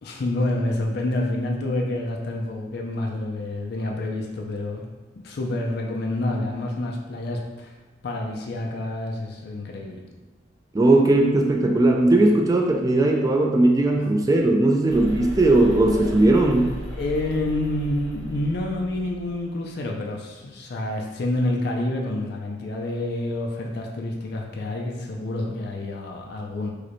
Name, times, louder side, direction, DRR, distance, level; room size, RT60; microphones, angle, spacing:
voice 1, 0.0-4.8 5.2-7.7 8.0-10.0 14.0-14.1 17.0-26.7, left 1 dB, 60° left, 0 dB, 0.4 m, -28 dB
voice 2, 10.7-16.7, right 2 dB, 20° right, 2 dB, 0.3 m, -18 dB
sound 1, 14.9-19.4, equal, 70° right, 1.1 m, -35 dB
4.8 x 2.1 x 3.0 m, 1.2 s
head